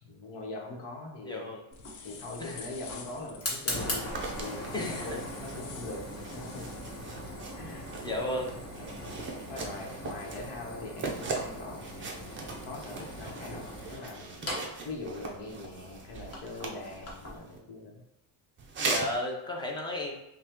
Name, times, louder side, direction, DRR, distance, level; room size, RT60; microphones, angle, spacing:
voice 1, 0.0-1.5 2.0-6.0 6.3-6.7 7.6-7.9 8.7-9.1 9.5-12.3 12.6-14.5 14.8-18.0, left 2 dB, 55° left, 0 dB, 1.1 m, -42 dB
voice 2, 1.2-1.6 2.4-2.7 4.7-5.2 8.0-8.5 18.8-20.1, left 1 dB, 10° left, -1 dB, 0.7 m, -33 dB
sound 1, 1.7-7.0, left 5 dB, 80° left, 0.8 m, -48 dB
Fire, 1.7-17.4, left 1 dB, 30° left, 1.3 m, -40 dB
sound 2, 4.1-17.6 18.6-19.2, right 3 dB, 25° right, 0.5 m, -40 dB
5.5 x 2.3 x 3.0 m, 0.90 s
cardioid pair, 130°, 50 cm